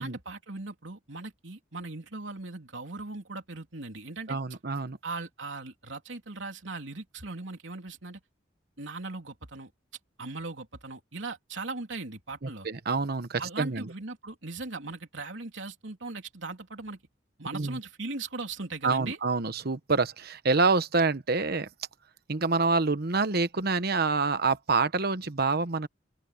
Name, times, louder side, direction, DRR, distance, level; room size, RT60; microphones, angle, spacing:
voice 1, 0.0-4.4 5.0-8.2 8.8-9.7 10.2-12.7 13.4-17.0 17.4-19.2, right 3 dB, 75° right, 3.4 m, -39 dB
voice 2, 4.3-5.0 12.4-13.9 17.5-17.8 18.8-21.7 22.3-25.9, right 4 dB, 55° right, 1.1 m, -27 dB
open air
head